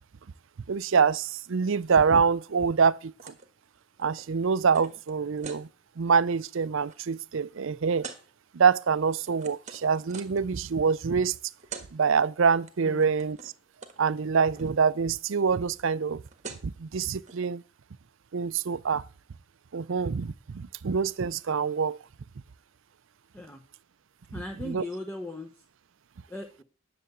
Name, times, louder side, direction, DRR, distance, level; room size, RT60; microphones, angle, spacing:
voice 1, 0.7-3.3 4.0-5.7 6.0-8.1 8.5-11.3 11.9-13.4 14.0-16.2 16.6-17.6 18.3-19.0 19.7-22.0 24.6-24.8, right 5 dB, 60° right, 0.5 m, -25 dB
sound 1, 3.2-3.5 3.8-5.6 6.1-6.4 6.7-7.0 8.0-8.2 8.9-10.5 11.3-11.4 11.6-11.9 12.2-12.7 13.0-13.6 13.8-14.0 14.2-14.7 16.0-16.1 16.2-16.8 17.2-17.4, right 5 dB, 30° right, 1.4 m, -44 dB
voice 2, 24.3-25.5 26.3-26.6, left 1 dB, 10° left, 1.1 m, -38 dB
10.0 x 6.9 x 8.1 m
head